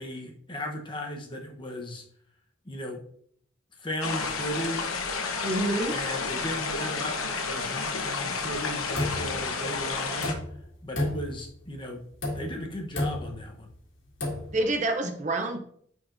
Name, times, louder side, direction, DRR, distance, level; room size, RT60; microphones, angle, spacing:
voice 1, 0.0-2.0 2.6-3.0 3.8-4.9 5.9-10.4 10.8-12.0 12.3-13.7, equal, 25° left, 2 dB, 0.9 m, -36 dB
sound 1, 4.0-10.3, left 4 dB, 85° left, 1.0 m, -31 dB
voice 2, 5.4-6.0 14.5-15.6, right 2 dB, 35° right, 5 dB, 0.6 m, -27 dB
sound 2, 8.5-9.7 10.1-10.7 10.9-11.6 12.1-12.7 12.9-13.5 14.1-14.6, left 1 dB, 60° left, 1.9 m, -32 dB
9.7 x 4.5 x 2.6 m, 0.64 s
head